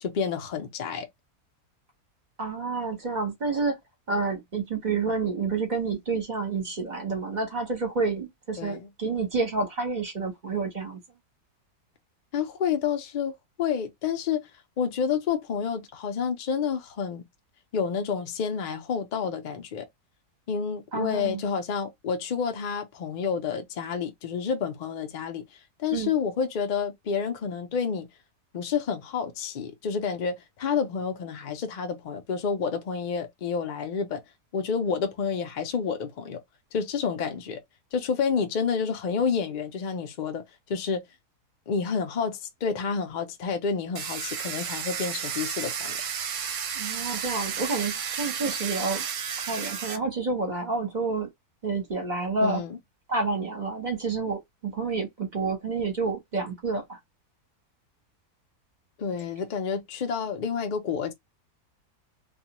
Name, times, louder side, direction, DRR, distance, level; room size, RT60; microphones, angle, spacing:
voice 1, 0.0-1.1 8.6-8.9 12.3-14.4 14.8-17.2 17.7-19.8 20.5-25.4 25.8-28.1 28.5-34.2 34.5-36.4 36.7-37.6 37.9-41.0 41.7-46.0 52.4-52.8 59.0-61.1, left 6 dB, 80° left, 0.4 m, -29 dB
voice 2, 2.4-3.8 4.1-11.0 20.9-21.4 25.9-26.1 46.7-49.0 49.5-51.3 51.6-52.6 53.1-57.0, right 4 dB, 40° right, 0.8 m, -29 dB
Domestic sounds home sounds, 44.0-50.0, right 7 dB, 65° right, 0.8 m, -32 dB
2.4 x 2.3 x 2.9 m
omnidirectional pair, 1.6 m